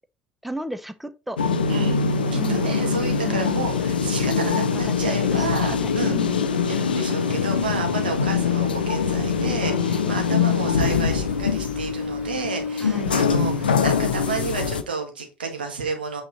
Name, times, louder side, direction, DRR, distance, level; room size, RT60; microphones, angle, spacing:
voice 1, 0.4-1.4 2.4-2.7 3.2-3.6 4.4-6.5 10.1-10.7 12.8-13.2, right 1 dB, ahead, 0.8 m, -35 dB
sound 1, 1.4-14.8, left 6 dB, 80° left, 0.6 m, -23 dB
sound 2, 1.6-14.6, right 1 dB, 20° right, 5.0 m, -47 dB
voice 2, 1.7-2.0 2.3-6.2 6.6-16.2, right 4 dB, 75° right, 1.8 m, -31 dB
8.5 x 4.2 x 4.1 m
figure-of-eight pair, 60°, 5 cm